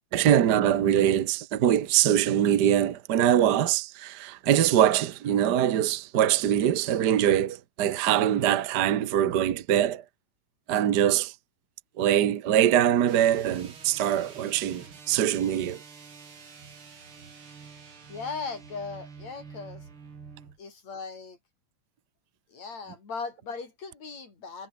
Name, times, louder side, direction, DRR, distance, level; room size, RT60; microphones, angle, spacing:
voice 1, 0.1-10.0 10.7-11.3 12.0-15.8, right 10 dB, 65° right, 1.0 m, -23 dB
sound 1, 13.0-20.6, right 5 dB, 45° right, 3.7 m, -47 dB
voice 2, 17.7-19.9 20.6-21.4 22.5-24.7, left 4 dB, 65° left, 6.5 m, -38 dB
omnidirectional pair, 3.3 m